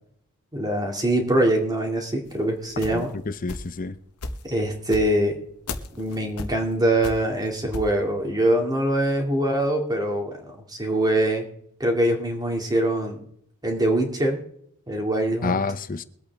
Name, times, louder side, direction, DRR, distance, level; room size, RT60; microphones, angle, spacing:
voice 1, 0.5-3.1 4.4-5.3 6.0-10.4 10.7-11.5 11.8-13.2 13.6-14.4 14.9-15.6, right 1 dB, 15° right, 2.3 m, -23 dB
sound 1, 2.3-3.8 4.2-8.0, left 2 dB, 85° left, 1.2 m, -35 dB
voice 2, 2.9-3.9 15.4-16.0, left 3 dB, 40° left, 0.7 m, -28 dB
22.5 x 8.5 x 3.5 m
head